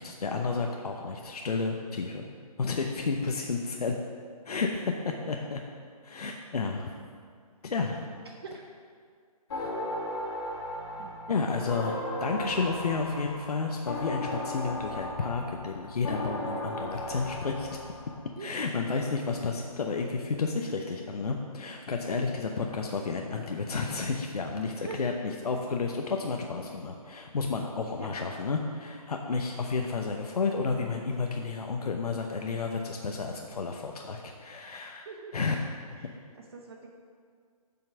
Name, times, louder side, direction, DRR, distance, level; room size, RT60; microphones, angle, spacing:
voice 1, 0.0-2.2 2.6-4.0 4.5-5.6 6.0-6.9 7.6-8.0 9.5-9.7 11.3-17.7 18.4-25.1 25.4-35.1 35.3-35.5 36.0-36.1, left 4 dB, 80° left, 2 dB, 0.8 m, -31 dB
voice 2, 5.0-5.5 6.6-6.7 8.4-8.7 11.0-11.2 18.4-18.5 24.8-25.0 28.0-28.1 28.4-28.5 35.0-35.3 36.0-36.9, right 5 dB, 40° right, 1 dB, 0.8 m, -45 dB
sound 1, 9.5-18.2, left 1 dB, 45° left, 2.0 m, -36 dB
7.7 x 5.7 x 5.7 m, 2.1 s
hypercardioid pair, 165°, 20 cm